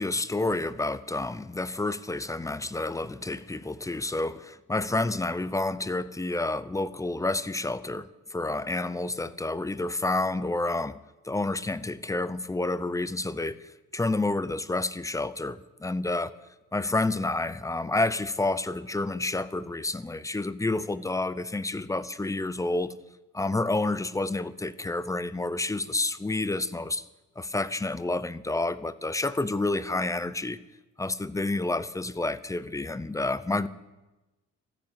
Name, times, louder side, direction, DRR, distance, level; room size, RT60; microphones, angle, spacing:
voice 1, 0.0-11.0 11.2-13.6 13.9-16.4 16.7-22.9 23.3-27.0 27.4-30.6 31.0-33.7, left 2 dB, 10° left, 16 dB, 0.6 m, -29 dB
13.5 x 10.5 x 8.1 m, 1.1 s
cardioid pair, 90°, 30 cm